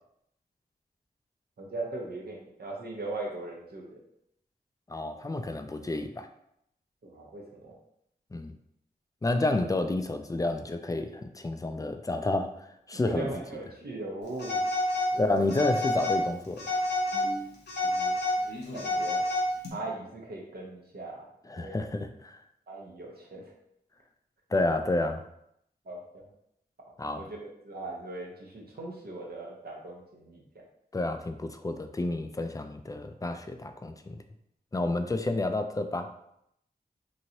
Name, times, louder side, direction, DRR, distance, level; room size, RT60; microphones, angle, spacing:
voice 1, 1.6-4.0 7.0-7.7 13.0-14.6 15.1-15.5 17.1-17.5 17.8-18.1 18.7-19.2 19.7-21.3 21.5-21.8 22.7-23.5 24.5-24.6 25.9-26.2 27.1-30.4, right 2 dB, 65° right, -2 dB, 0.8 m, -39 dB
voice 2, 4.9-6.3 8.3-8.6 9.2-13.3 15.2-16.7 21.5-22.4 24.5-25.2 27.0-27.3 30.9-34.2 34.7-36.1, left 2 dB, 20° left, 7 dB, 0.3 m, -30 dB
Telephone, 14.4-15.1 15.5-16.2 16.6-17.3 17.7-19.7, left 1 dB, 80° left, 0.8 m, -28 dB
3.0 x 2.7 x 2.8 m, 0.76 s
cardioid pair, 50°, 17 cm